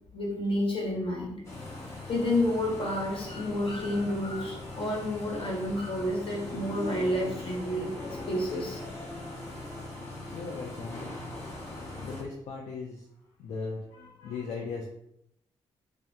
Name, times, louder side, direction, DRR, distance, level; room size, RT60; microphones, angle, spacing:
voice 1, 0.1-1.4 2.1-7.9 8.3-8.8, left 1 dB, 50° left, -3 dB, 1.3 m, -30 dB
sound 1, 1.4-12.2, left 2 dB, 25° left, 1.1 m, -40 dB
voice 2, 10.3-11.2 12.0-13.1 13.4-14.9, left 4 dB, 75° left, -1 dB, 0.4 m, -38 dB
2.6 x 2.2 x 3.5 m, 0.77 s
supercardioid pair, 50°, 12 cm